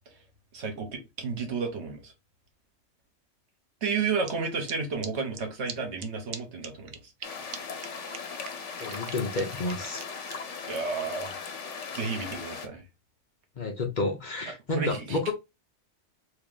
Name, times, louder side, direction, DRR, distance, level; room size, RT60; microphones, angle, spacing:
voice 1, 0.5-2.1 3.8-7.0 10.7-11.4 11.9-12.8 14.7-15.3, right 5 dB, 70° right, 1.3 m, -32 dB
sound 1, 4.2-4.3 4.7-4.8 5.0-5.1 5.3-5.4 5.7-5.8 6.0-6.1 6.3-6.4 6.6-7.3 7.5-7.6 7.8-10.3, right 8 dB, 90° right, 1.0 m, -40 dB
sound 2, 7.2-12.7, left 5 dB, 85° left, 1.0 m, -38 dB
voice 2, 8.8-10.0 13.6-15.3, left 2 dB, 45° left, 0.8 m, -30 dB
2.9 x 2.8 x 3.7 m
omnidirectional pair, 1.2 m